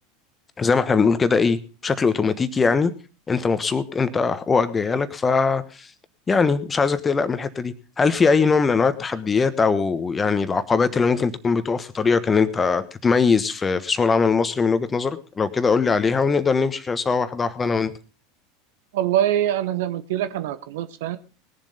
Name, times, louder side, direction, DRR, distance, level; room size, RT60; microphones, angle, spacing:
voice 1, 0.6-2.9 3.3-5.9 6.3-17.9, left 5 dB, 20° left, 13 dB, 1.2 m, -21 dB
voice 2, 18.9-21.2, right 11 dB, 65° right, 13 dB, 1.0 m, -24 dB
19.5 x 7.4 x 5.4 m, 0.36 s
figure-of-eight pair, 80°, 0 cm